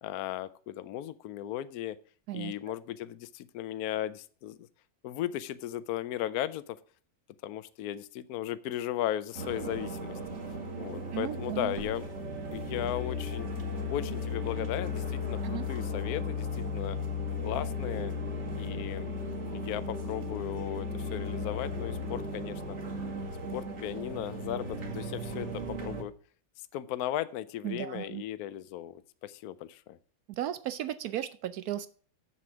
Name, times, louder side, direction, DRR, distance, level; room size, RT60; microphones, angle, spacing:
voice 1, 0.0-2.0 2.3-4.6 5.0-6.8 7.4-10.2 10.8-12.1 12.5-13.5 13.9-17.0 17.4-18.1 18.5-22.8 23.5-26.1 26.6-30.0, left 12 dB, 70° left, 14 dB, 0.9 m, -36 dB
sound 1, 9.3-26.0, left 2 dB, 40° right, 2.1 m, -36 dB
voice 2, 11.1-11.7 15.4-15.7 27.6-28.2 30.3-31.9, right 12 dB, 75° right, 14 dB, 0.8 m, -35 dB
7.3 x 7.0 x 6.0 m, 0.43 s
omnidirectional pair, 2.1 m